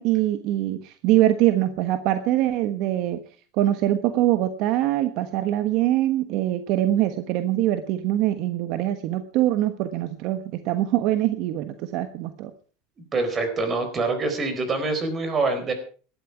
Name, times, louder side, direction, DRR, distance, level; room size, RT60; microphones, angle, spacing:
voice 1, 0.0-3.2 3.5-12.5, right 14 dB, 55° right, 9 dB, 1.2 m, -23 dB
voice 2, 13.1-15.7, right 3 dB, 25° right, 8 dB, 4.3 m, -25 dB
18.0 x 12.5 x 4.8 m, 0.40 s
supercardioid pair, 135°, 0 cm